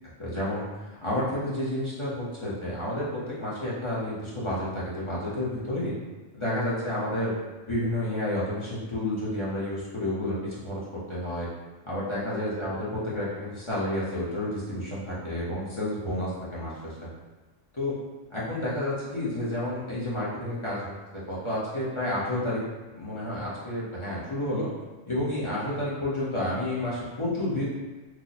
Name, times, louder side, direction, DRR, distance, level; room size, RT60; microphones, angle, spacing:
voice 1, 0.2-0.6 1.0-5.9 6.3-7.3 7.7-10.8 11.1-11.5 11.8-16.9 17.7-18.0 18.3-22.6 23.0-24.7 25.1-27.6, left 1 dB, 30° left, -8 dB, 0.7 m, -30 dB
2.9 x 2.0 x 3.9 m, 1.2 s
omnidirectional pair, 1.3 m